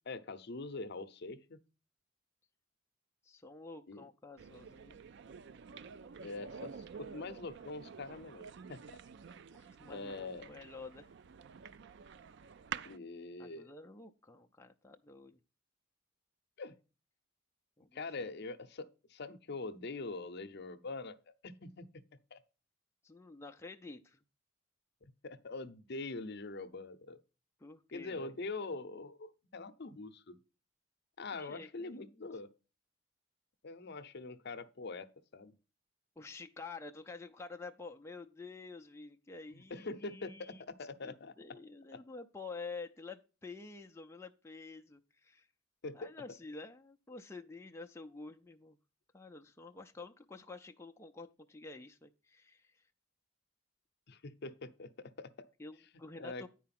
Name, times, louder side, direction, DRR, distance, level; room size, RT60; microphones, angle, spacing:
voice 1, 0.1-1.6 3.9-4.0 6.2-8.8 9.9-10.5 12.8-13.7 16.6-16.7 17.9-21.2 21.4-21.9 22.3-22.4 25.0-27.2 27.9-30.4 31.2-32.5 33.6-35.6 39.5-41.3 45.8-46.1 54.1-55.5 56.1-56.5, left 3 dB, 55° left, 0.7 m, -44 dB
voice 2, 3.2-5.0 9.5-11.1 13.4-15.4 17.8-18.3 23.0-24.2 27.6-28.4 31.3-32.3 36.2-40.6 41.0-45.5 45.9-48.8 49.1-52.9 55.6-56.5, left 3 dB, 15° left, 0.4 m, -49 dB
sound 1, 4.4-13.0, right 7 dB, 60° right, 0.4 m, -49 dB
9.6 x 4.6 x 5.8 m
head